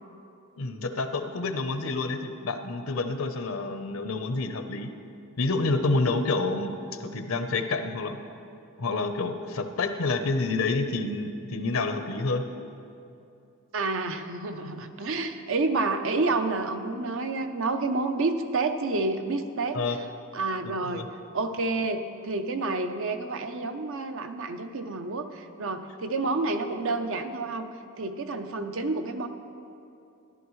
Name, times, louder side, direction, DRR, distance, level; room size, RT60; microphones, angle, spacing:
voice 1, 0.6-4.9 5.4-8.2 8.8-12.5 19.7-20.0 20.9-21.1, left 3 dB, 70° left, 7 dB, 0.7 m, -28 dB
voice 2, 13.7-19.8 20.3-21.0 21.3-27.7 28.0-29.3, right 3 dB, 65° right, 7 dB, 0.6 m, -29 dB
13.5 x 11.0 x 3.1 m, 2.7 s
head